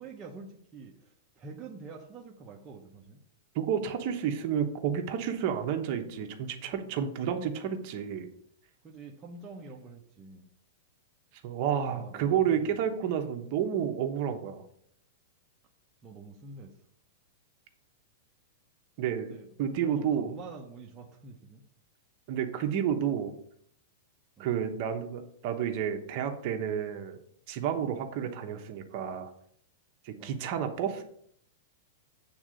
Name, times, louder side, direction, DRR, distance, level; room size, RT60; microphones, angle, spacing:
voice 1, 0.0-3.2 8.8-10.5 11.9-12.9 16.0-16.8 19.2-19.5 19.7-21.6 24.4-24.5 27.8-28.0 30.2-30.4, right 4 dB, 15° right, 0 dB, 0.8 m, -47 dB
voice 2, 3.5-8.3 11.4-14.6 19.0-20.3 22.3-23.3 24.4-27.2 27.5-29.3 30.0-31.0, right 8 dB, 40° right, 5 dB, 1.0 m, -30 dB
8.6 x 3.7 x 6.3 m, 0.67 s
supercardioid pair, 160°, 0 cm